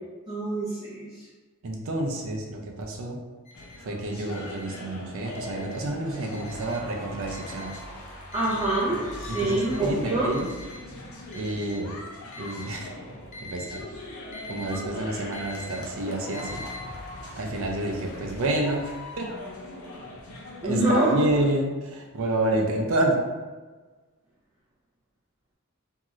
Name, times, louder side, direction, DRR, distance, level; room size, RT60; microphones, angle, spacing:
voice 1, 0.3-1.2 8.3-10.4 20.6-21.1, right 2 dB, 20° right, -8 dB, 0.5 m, -26 dB
voice 2, 1.6-3.2 3.8-7.8 9.3-10.5 11.3-12.0 12.4-12.9 13.4-13.8 14.5-16.6 17.4-19.2 20.6-23.2, right 1 dB, 65° right, 1 dB, 0.5 m, -29 dB
Alarm, 3.4-3.8 4.3-4.8 5.3-5.8 6.3-6.8 7.3-7.8 8.3-8.8 9.3-9.8 10.3-10.8 11.3-11.8 12.3-12.8 13.3-13.8 14.3-14.8 15.3-15.8 16.3-16.8, left 3 dB, 35° left, 0.4 m, -43 dB
sound 1, 3.5-21.5, left 1 dB, 75° left, 0.6 m, -41 dB
2.7 x 2.4 x 3.0 m, 1.3 s
head